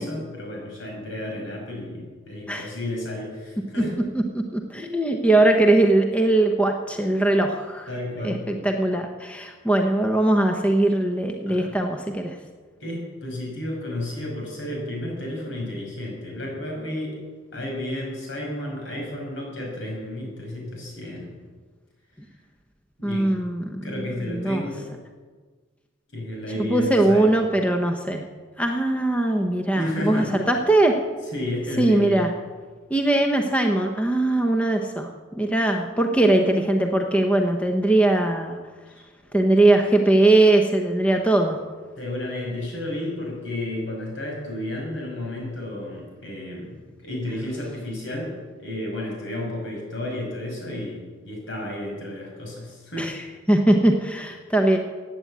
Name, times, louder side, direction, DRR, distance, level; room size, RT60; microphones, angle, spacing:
voice 1, 0.0-4.0 7.9-8.4 11.5-11.8 12.8-17.2 17.5-21.3 23.0-23.3 23.8-24.9 26.1-27.4 29.8-30.3 31.3-32.3 42.0-53.1, left 1 dB, 70° left, -1 dB, 5.8 m, -32 dB
voice 2, 4.3-7.9 8.2-12.4 23.0-23.9 24.3-24.6 26.6-28.2 28.6-31.0 31.8-32.3 32.9-38.6 39.3-41.6 53.0-53.2 53.5-54.8, right 2 dB, 5° left, 3 dB, 0.9 m, -20 dB
15.0 x 9.3 x 8.4 m, 1.5 s
head